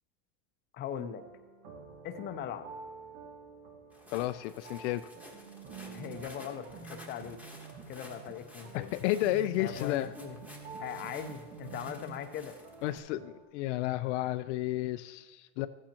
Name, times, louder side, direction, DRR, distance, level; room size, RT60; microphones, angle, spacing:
voice 1, 0.7-1.2 2.0-2.7 5.9-7.4 7.9-9.0 9.6-10.4 10.8-12.6 15.6-15.7, left 9 dB, 30° left, 8 dB, 0.6 m, -40 dB
sound 1, 1.2-13.4, right 4 dB, 80° right, 2.0 m, -51 dB
Walk footsteps, 3.9-13.0, left 1 dB, 5° right, 1.4 m, -53 dB
voice 2, 4.1-5.1 8.7-10.1 12.8-15.7, left 15 dB, 70° left, 11 dB, 0.5 m, -32 dB
sound 2, 5.3-12.2, right 4 dB, 55° right, 1.7 m, -49 dB
14.5 x 8.8 x 2.9 m, 1.4 s
supercardioid pair, 130°, 37 cm